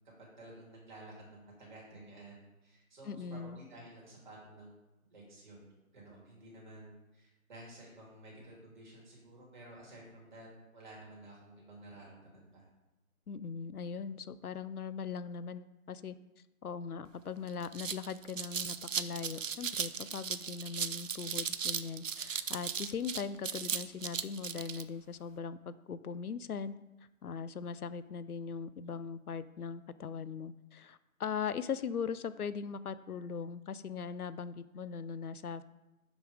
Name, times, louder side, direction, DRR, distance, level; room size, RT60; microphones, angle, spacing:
voice 1, 0.2-4.7 5.1-5.7 5.9-12.6, right 1 dB, 30° right, -4 dB, 2.7 m, -53 dB
voice 2, 3.1-3.6 13.3-16.1 16.6-26.7 27.2-35.6, left 6 dB, 90° left, 14 dB, 0.7 m, -40 dB
sound 1, 17.1-17.2 17.5-24.8, right 7 dB, 60° right, 0.6 m, -37 dB
7.3 x 5.4 x 4.8 m, 0.99 s
figure-of-eight pair, 165°, 43 cm